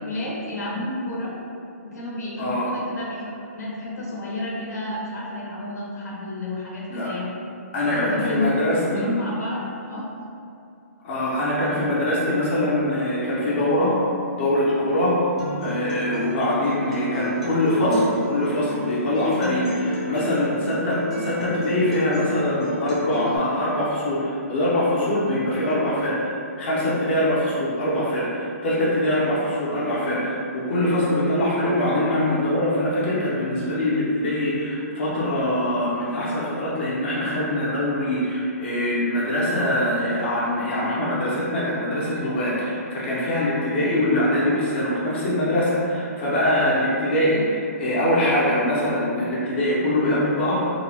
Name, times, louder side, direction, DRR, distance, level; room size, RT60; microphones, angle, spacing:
voice 1, 0.0-1.4 1.8-7.3 7.9-10.0, left 2 dB, 85° left, -5 dB, 0.8 m, -31 dB
voice 2, 2.4-2.7 6.9-7.1 7.7-9.1 11.0-13.9 14.3-15.2 15.6-26.3 26.6-50.6, left 1 dB, 40° left, -8 dB, 0.6 m, -23 dB
Acoustic guitar, 15.4-23.4, left 2 dB, 5° right, 0.4 m, -31 dB
2.7 x 2.1 x 2.7 m, 2.5 s
hypercardioid pair, 170°, 9 cm